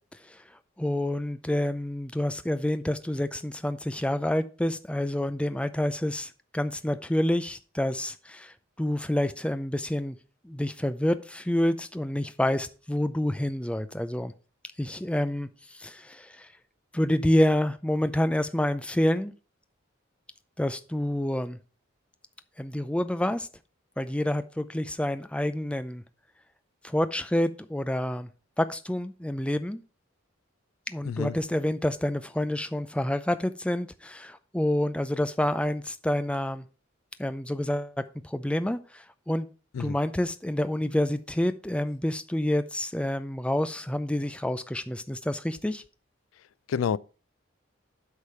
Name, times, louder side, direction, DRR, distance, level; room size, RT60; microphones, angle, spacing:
voice 1, 0.8-10.2 10.4-14.3 14.8-15.5 15.7-16.5 16.9-19.3 20.6-21.6 22.6-23.5 24.0-26.0 26.8-28.3 28.6-29.8 30.9-36.6 37.2-37.9 38.2-39.5 39.8-45.8, left 1 dB, 5° left, 0.5 m, -28 dB
voice 2, 31.1-31.3 39.8-40.0 46.7-47.0, left 7 dB, 85° left, 0.3 m, -28 dB
8.3 x 4.9 x 5.5 m
head